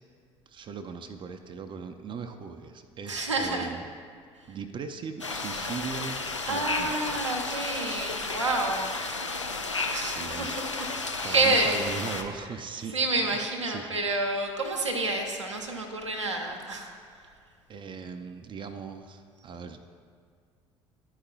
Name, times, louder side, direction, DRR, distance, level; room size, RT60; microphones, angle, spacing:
voice 1, 0.5-3.8 4.5-7.2 10.0-10.7 11.2-13.0 13.3-13.9 17.7-19.9, right 5 dB, 35° right, 7 dB, 0.5 m, -39 dB
voice 2, 3.1-3.7 4.5-4.6 6.5-9.2 9.9-10.3 11.2-11.8 12.9-16.9 17.1-17.2, right 2 dB, 85° right, 1 dB, 0.7 m, -29 dB
sound 1, 5.2-12.2, left 3 dB, 90° left, 0.4 m, -33 dB
11.5 x 4.9 x 2.3 m, 2.1 s
figure-of-eight pair, 55°, 15 cm